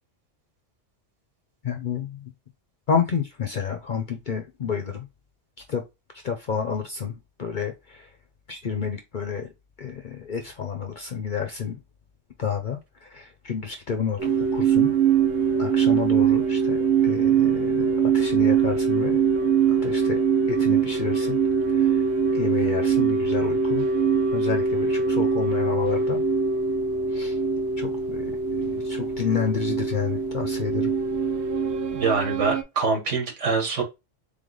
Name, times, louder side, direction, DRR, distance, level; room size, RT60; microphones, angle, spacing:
voice 1, 1.6-2.2 2.9-5.1 5.7-5.8 6.2-8.1 8.5-9.5 9.8-11.8 12.4-14.9 15.6-19.2 19.7-20.2 20.5-21.4 21.7-22.0 22.3-23.8 24.3-26.2 27.1-27.4 27.8-30.9, left 7 dB, 50° left, 0.7 m, -30 dB
sound 1, 14.2-32.6, right 6 dB, 65° right, 1.0 m, -23 dB
voice 2, 31.9-33.8, right 4 dB, 85° right, 1.6 m, -24 dB
3.7 x 3.4 x 3.8 m
omnidirectional pair, 1.2 m